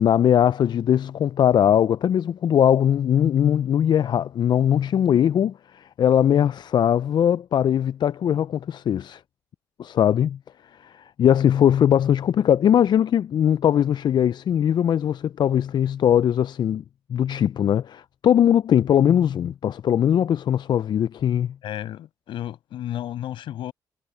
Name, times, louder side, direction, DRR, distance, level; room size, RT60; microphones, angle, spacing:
voice 1, 0.0-9.2 9.8-10.4 10.8-16.8 17.1-21.5, left 9 dB, 60° left, 0.4 m, -20 dB
voice 2, 21.6-23.7, left 12 dB, 80° left, 6.9 m, -32 dB
supercardioid pair, 55°, 8 cm